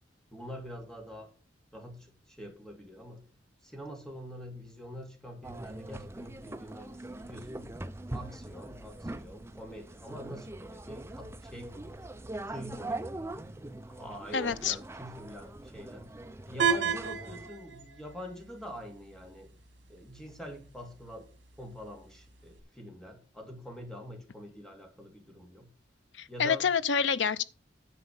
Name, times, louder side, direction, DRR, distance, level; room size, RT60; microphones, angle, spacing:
voice 1, 0.3-1.3 1.7-3.3 3.6-7.7 8.1-13.1 13.8-16.1 16.5-19.5 19.9-21.3 21.6-25.7 26.3-26.7, equal, 5° left, 2.4 m, -45 dB
sound 1, 5.4-17.5, right 2 dB, 15° right, 0.6 m, -42 dB
voice 2, 14.3-14.8 26.2-27.4, left 6 dB, 70° left, 0.6 m, -27 dB
sound 2, 16.6-22.6, right 6 dB, 85° right, 2.0 m, -36 dB
9.8 x 4.9 x 7.2 m
head